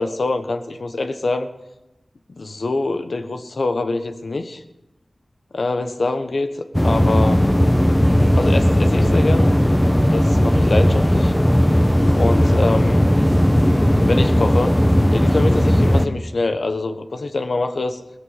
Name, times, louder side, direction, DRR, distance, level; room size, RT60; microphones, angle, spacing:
voice 1, 0.0-1.5 2.4-4.6 5.5-7.4 8.4-9.5 10.1-11.3 12.2-13.1 14.0-14.8 15.1-18.0, left 3 dB, 75° left, 8 dB, 1.2 m, -24 dB
sound 1, 6.7-16.1, equal, 10° left, 1.1 m, -16 dB
17.5 x 14.0 x 5.7 m, 0.97 s
cardioid pair, 45°, 0 cm